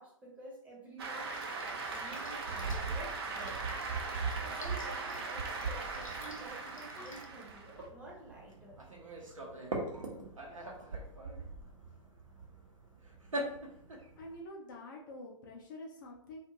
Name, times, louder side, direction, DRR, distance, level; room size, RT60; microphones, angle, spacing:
voice 1, 0.0-3.6 4.6-8.8, right 1 dB, 10° right, -4 dB, 0.7 m, -50 dB
Cheering / Applause, 1.0-7.8, right 4 dB, 50° right, 0.5 m, -40 dB
Drip, 1.3-7.3, left 3 dB, 80° left, 0.5 m, -54 dB
sound 1, 1.8-14.4, right 3 dB, 75° right, 0.8 m, -42 dB
voice 2, 14.2-16.4, left 1 dB, 40° left, -1 dB, 0.5 m, -47 dB
2.5 x 2.4 x 2.9 m, 0.69 s
figure-of-eight pair, 120°, 17 cm